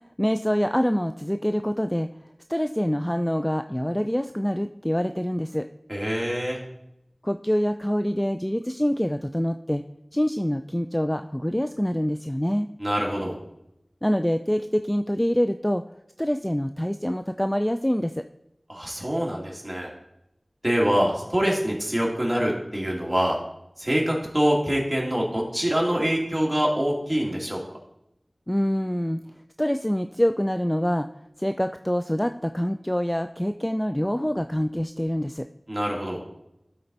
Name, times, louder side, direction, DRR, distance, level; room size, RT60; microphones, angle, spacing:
voice 1, 0.2-2.1 2.5-5.7 7.2-9.8 10.1-12.7 14.0-15.8 16.2-18.3 28.5-29.2 29.6-31.1 31.4-35.5, equal, 10° left, 8 dB, 0.3 m, -25 dB
voice 2, 5.9-6.6 12.8-13.4 18.7-19.9 20.6-23.4 23.8-27.6 35.7-36.2, equal, 15° right, -2 dB, 2.5 m, -25 dB
12.5 x 4.4 x 4.0 m, 0.83 s
wide cardioid pair, 40°, 0 cm